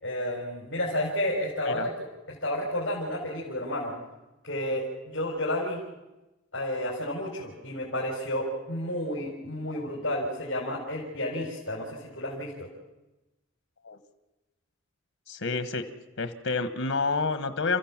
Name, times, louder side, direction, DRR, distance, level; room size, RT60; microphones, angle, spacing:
voice 1, 0.0-4.0 4.4-5.8 6.5-12.7, left 1 dB, 65° left, -4 dB, 4.6 m, -31 dB
voice 2, 15.3-15.9 16.2-17.8, left 4 dB, 85° left, 11 dB, 1.4 m, -29 dB
29.0 x 15.0 x 7.5 m, 1.0 s
head